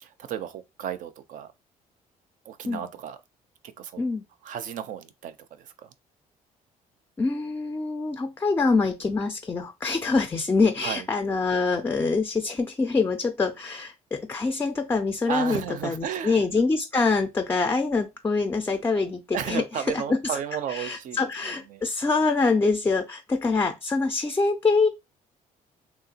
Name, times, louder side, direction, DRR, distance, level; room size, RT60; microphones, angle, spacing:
voice 1, 0.0-1.5 2.5-3.2 3.6-4.0 4.4-5.9 10.8-11.0 15.3-16.4 19.3-21.8, right 9 dB, 60° right, 0.5 m, -34 dB
voice 2, 7.2-20.4 20.7-24.9, left 4 dB, 15° left, 0.3 m, -25 dB
2.8 x 2.3 x 2.7 m
cardioid pair, 100°, 15 cm